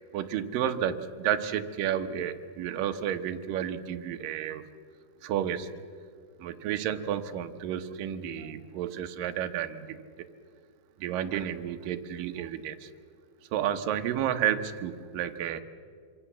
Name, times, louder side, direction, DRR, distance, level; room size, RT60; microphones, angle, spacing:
voice 1, 0.1-4.7 5.2-5.7 6.4-10.3 11.0-12.9 13.5-15.6, right 10 dB, 70° right, 7 dB, 2.6 m, -31 dB
26.0 x 25.0 x 7.4 m, 2.1 s
omnidirectional pair, 4.2 m